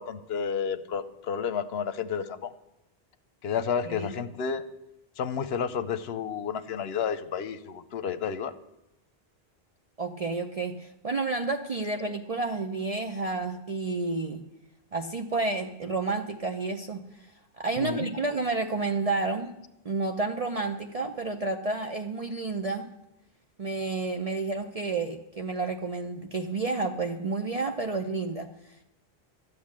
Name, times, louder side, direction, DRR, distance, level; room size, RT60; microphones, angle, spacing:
voice 1, 0.0-2.5 3.4-4.6 5.2-8.5 17.8-18.1, left 7 dB, 75° left, 14 dB, 0.9 m, -31 dB
voice 2, 10.0-14.4 14.9-17.0 17.6-19.5 19.8-22.9 23.6-28.8, right 3 dB, 40° right, 5 dB, 0.7 m, -30 dB
12.5 x 8.4 x 7.4 m, 0.87 s
omnidirectional pair, 1.1 m